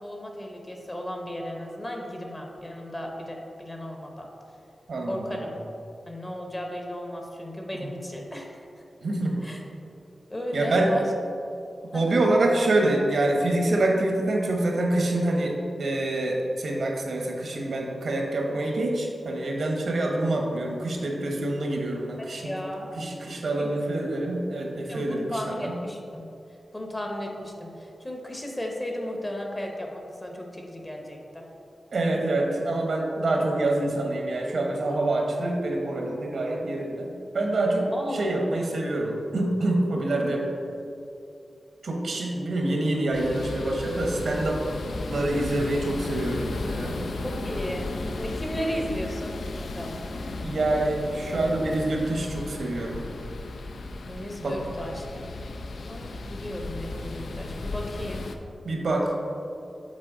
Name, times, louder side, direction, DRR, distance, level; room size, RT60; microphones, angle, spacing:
voice 1, 0.0-4.3 5.1-5.5 6.1-8.7 9.4-9.6 10.3-11.0 11.9-12.2 22.2-22.9 23.6-24.0 24.9-26.2 26.7-31.4 37.9-38.7 47.2-50.0 54.1-55.0 55.9-58.3, equal, 20° left, 1 dB, 0.8 m, -35 dB
voice 2, 4.9-5.5 9.0-9.4 10.5-10.9 11.9-22.5 23.0-25.8 31.9-40.5 41.8-44.6 45.1-47.0 50.4-53.0 54.4-54.6 58.6-59.1, right 2 dB, 70° right, 1 dB, 0.9 m, -26 dB
sound 1, 43.1-58.3, left 2 dB, 75° left, 0.4 m, -35 dB
7.5 x 4.2 x 3.8 m, 2.6 s
wide cardioid pair, 105°, 0 cm